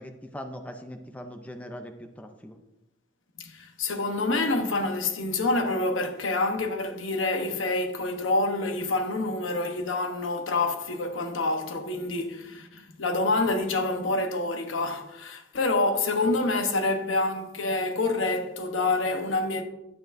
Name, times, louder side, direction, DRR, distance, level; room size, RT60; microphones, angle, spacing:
voice 1, 0.0-2.6, equal, 5° left, 0.5 m, -41 dB
voice 2, 3.4-19.6, left 2 dB, 90° left, 1.0 m, -27 dB
10.5 x 8.9 x 2.6 m
head